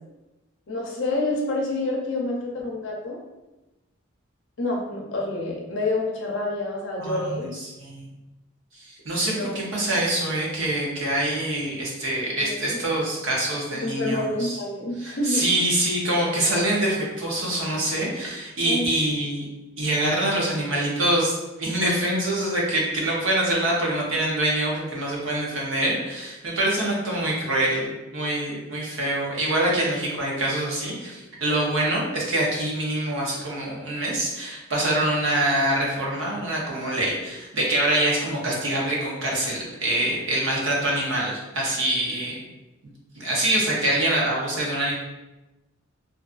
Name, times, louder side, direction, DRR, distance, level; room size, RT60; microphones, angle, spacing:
voice 1, 0.7-3.2 4.6-7.5 9.3-9.6 12.4-12.6 13.7-15.4 18.6-18.8, left 2 dB, 65° left, -1 dB, 0.5 m, -28 dB
voice 2, 7.0-8.1 8.8-14.6 15.0-19.5 19.8-42.4 43.1-44.9, right 1 dB, 70° right, -3 dB, 0.7 m, -25 dB
2.5 x 2.4 x 2.4 m, 1.0 s
head